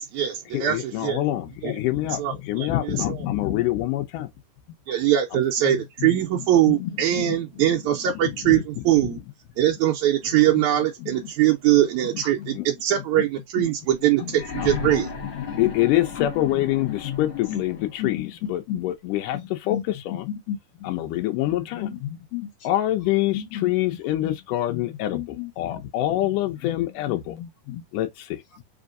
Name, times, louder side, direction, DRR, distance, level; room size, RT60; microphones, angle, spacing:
voice 1, 0.0-1.2 1.6-1.8 2.1-3.3 4.9-9.2 9.6-15.1, right 12 dB, 75° right, 1.9 m, -22 dB
voice 2, 0.5-4.3 8.5-8.6 9.0-9.1 12.5-12.6 14.6-14.7 15.6-20.3 20.8-21.9 22.6-27.3 27.9-28.4, left 14 dB, 85° left, 2.3 m, -25 dB
voice 3, 3.2-3.6 6.7-6.9 7.3-7.4 14.2-14.3 15.5-15.7 16.2-16.5 17.0-17.6 18.0-18.3 18.7-18.8 19.3-19.8 20.3-20.6 21.5-22.5 23.3-23.7 24.2-24.3 25.1-25.5 26.7-26.8 27.3-27.8, left 11 dB, 65° left, 2.0 m, -32 dB
sound 1, 14.3-18.1 19.3-19.4, left 5 dB, 45° left, 1.7 m, -35 dB
5.0 x 3.4 x 2.5 m
omnidirectional pair, 3.6 m